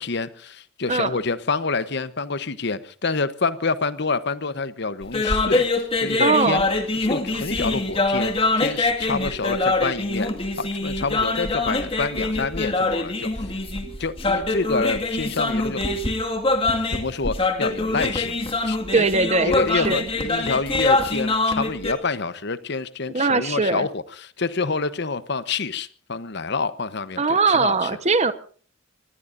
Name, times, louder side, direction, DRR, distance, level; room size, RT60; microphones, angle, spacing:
voice 1, 0.0-6.6 7.0-10.3 10.6-13.5 14.0-15.8 16.9-18.4 18.6-19.1 19.4-27.9, left 4 dB, 60° left, 14 dB, 1.0 m, -27 dB
sound 1, 5.0-21.9, left 2 dB, 30° left, 2.1 m, -24 dB
voice 2, 6.2-6.6 18.9-20.0 23.1-23.9 27.2-28.3, right 4 dB, 35° right, 11 dB, 1.2 m, -21 dB
25.5 x 20.0 x 2.7 m, 0.43 s
head